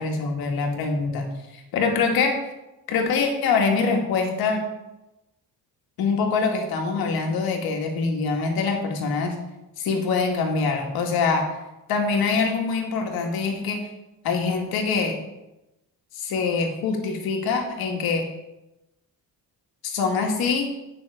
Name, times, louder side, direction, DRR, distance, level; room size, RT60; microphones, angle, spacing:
voice 1, 0.0-2.4 2.9-4.6 6.0-9.4 9.8-11.5 11.9-13.8 14.2-15.2 16.1-18.3 19.8-20.7, left 4 dB, 80° left, 2 dB, 1.9 m, -24 dB
10.0 x 6.1 x 4.8 m, 0.96 s
cardioid pair, 155°, 36 cm